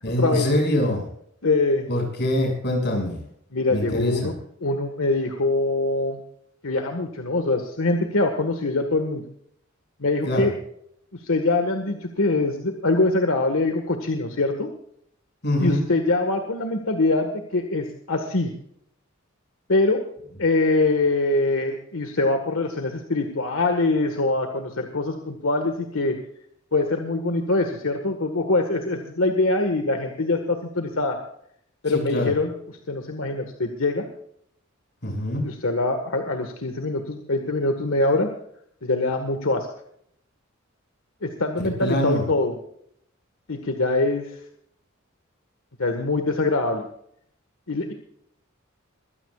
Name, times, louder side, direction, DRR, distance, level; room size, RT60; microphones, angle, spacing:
voice 1, 0.0-1.1 1.9-3.2 3.7-4.3 10.3-10.5 15.4-15.8 31.9-32.3 35.0-35.5 41.8-42.2, left 1 dB, 55° left, 2 dB, 6.9 m, -24 dB
voice 2, 1.4-1.9 3.5-4.3 4.6-6.2 6.6-9.2 10.0-10.5 11.1-14.7 15.6-18.5 19.7-20.0 20.4-26.2 26.7-31.2 31.8-34.1 35.4-38.3 38.8-39.7 41.2-42.6 43.5-44.4 45.8-46.9 47.7-47.9, left 2 dB, 90° left, 4 dB, 1.7 m, -23 dB
23.0 x 16.5 x 2.5 m, 0.68 s
head